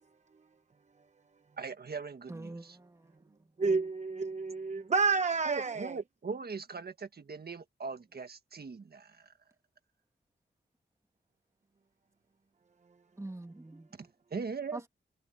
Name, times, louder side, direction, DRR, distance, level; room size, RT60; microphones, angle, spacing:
voice 1, 1.6-2.8 5.4-9.3 14.0-14.9, right 5 dB, 55° right, 1.6 m, -40 dB
voice 2, 2.3-3.3 13.2-13.9 14.7-14.9, right 2 dB, 15° right, 1.9 m, -45 dB
voice 3, 3.6-6.0, right 4 dB, 40° right, 0.9 m, -29 dB
wide cardioid pair, 120°, 19 cm